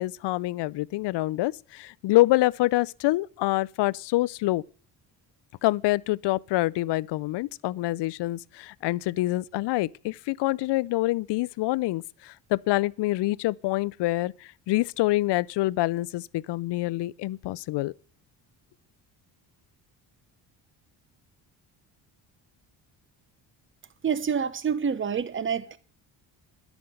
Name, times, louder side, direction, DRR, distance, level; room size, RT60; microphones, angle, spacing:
voice 1, 0.0-4.6 5.6-17.9, left 18 dB, 65° left, 0.5 m, -26 dB
voice 2, 24.0-25.8, right 7 dB, 25° right, 0.9 m, -27 dB
11.0 x 7.2 x 7.8 m
cardioid pair, 75°, 45 cm